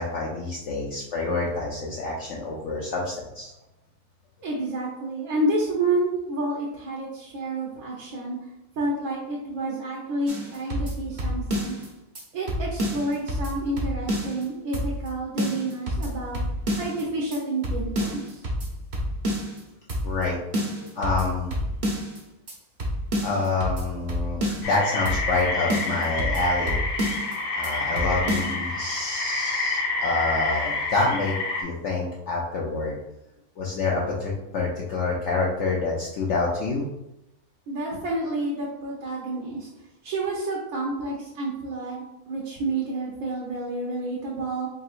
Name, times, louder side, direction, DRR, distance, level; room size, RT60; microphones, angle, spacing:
voice 1, 0.0-3.5 20.0-20.4 20.8-21.5 23.2-24.4 24.7-26.8 27.5-31.3 31.6-33.0 33.6-36.8, left 3 dB, 60° left, -4 dB, 0.8 m, -27 dB
voice 2, 4.4-8.4 8.8-11.7 12.3-16.4 16.8-18.4 37.7-39.7 40.0-44.7, right 2 dB, 70° right, -3 dB, 1.3 m, -29 dB
sound 1, 10.3-11.9 12.2-12.3 12.5-14.4 14.7-15.1 15.4-17.0 17.3-17.4 17.6-19.6 19.9-20.3 20.5-22.2 22.5-22.6 22.8-24.8 25.1-25.4 25.7-27.4 27.6-27.7 28.0-28.5, equal, 40° right, 0.7 m, -29 dB
sound 2, 24.6-31.6, left 3 dB, 90° left, 1.2 m, -28 dB
4.1 x 3.7 x 2.4 m, 0.89 s
omnidirectional pair, 1.6 m